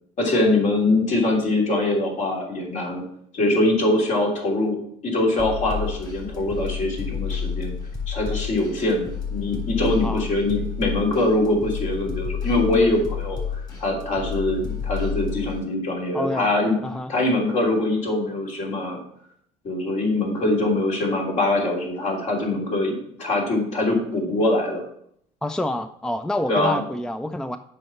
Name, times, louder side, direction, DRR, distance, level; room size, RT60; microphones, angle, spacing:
voice 1, 0.2-3.0 3.3-4.8 5.0-7.7 8.1-16.7 17.1-19.0 19.6-24.8 26.5-26.8, left 2 dB, 55° left, -1 dB, 3.1 m, -23 dB
sound 1, 5.4-15.6, left 6 dB, 30° left, 3.4 m, -30 dB
voice 2, 16.1-16.5 16.8-17.1 25.4-27.6, left 1 dB, 5° left, 10 dB, 0.4 m, -28 dB
7.7 x 5.5 x 5.7 m, 0.68 s
supercardioid pair, 100°, 15 cm